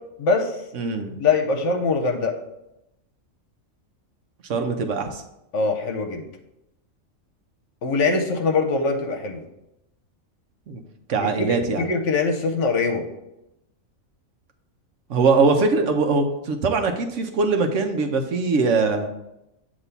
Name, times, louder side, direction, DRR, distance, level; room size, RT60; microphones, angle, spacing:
voice 1, 0.2-0.6 1.2-2.4 5.5-6.2 7.8-9.4 11.2-13.0, left 4 dB, 65° left, 4 dB, 1.1 m, -23 dB
voice 2, 0.7-1.1 4.5-5.2 10.7-10.8 11.1-11.9 15.1-19.1, right 4 dB, 70° right, 5 dB, 1.0 m, -22 dB
8.1 x 3.0 x 5.6 m, 0.87 s
omnidirectional pair, 1.4 m